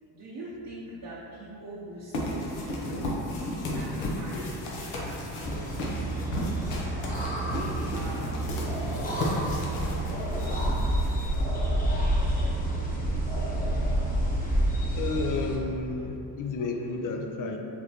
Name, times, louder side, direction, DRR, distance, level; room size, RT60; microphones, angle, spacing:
voice 1, 0.1-3.3 3.7-4.6 4.9-5.7 7.3-8.3 8.8-10.7 12.0-14.4, right 1 dB, 45° right, -7 dB, 0.8 m, -44 dB
sound 1, 2.1-11.7, left 1 dB, 80° left, 0.9 m, -34 dB
laughing kookaburra, 5.4-15.6, right 1 dB, 20° left, 1.0 m, -28 dB
voice 2, 15.0-17.6, left 3 dB, 45° left, 4 dB, 0.5 m, -31 dB
6.4 x 2.2 x 2.8 m, 2.8 s
supercardioid pair, 65°, 47 cm